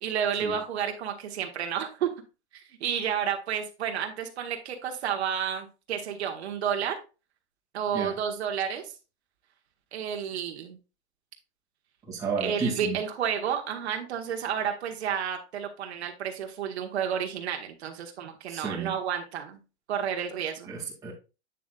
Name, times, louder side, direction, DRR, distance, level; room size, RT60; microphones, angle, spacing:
voice 1, 0.0-2.1 2.5-6.9 7.7-8.9 9.9-10.8 12.4-19.6 19.9-20.7, right 8 dB, 70° right, 4 dB, 1.4 m, -31 dB
voice 2, 12.1-13.0 18.5-18.9 20.7-21.1, right 5 dB, 10° right, -5 dB, 2.2 m, -32 dB
8.4 x 7.5 x 2.4 m, 0.30 s
hypercardioid pair, 150°, 34 cm